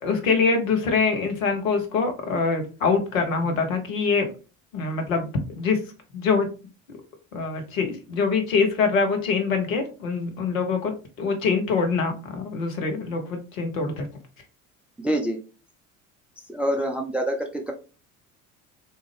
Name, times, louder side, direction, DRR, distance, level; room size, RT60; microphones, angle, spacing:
voice 1, 0.0-4.3 4.7-5.8 6.1-6.5 7.3-14.1, left 4 dB, 70° left, 4 dB, 1.0 m, -24 dB
voice 2, 15.0-15.4 16.5-17.7, right 1 dB, 5° right, 3 dB, 0.4 m, -26 dB
3.6 x 2.7 x 3.1 m, 0.33 s
figure-of-eight pair, 65°, 41 cm